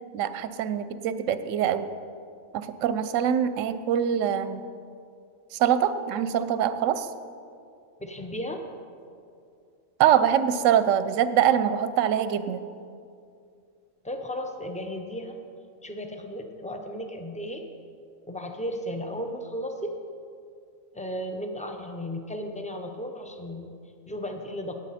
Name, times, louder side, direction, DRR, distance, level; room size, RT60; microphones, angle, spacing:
voice 1, 0.1-1.9 2.5-4.7 5.5-7.1 10.0-12.6, right 9 dB, 70° right, 12 dB, 0.9 m, -24 dB
voice 2, 8.0-8.6 14.0-15.4 15.8-17.7 18.3-19.9 20.9-23.7 24.1-24.7, equal, 5° left, 4 dB, 0.6 m, -34 dB
18.0 x 8.0 x 4.2 m, 2.4 s
omnidirectional pair, 1.5 m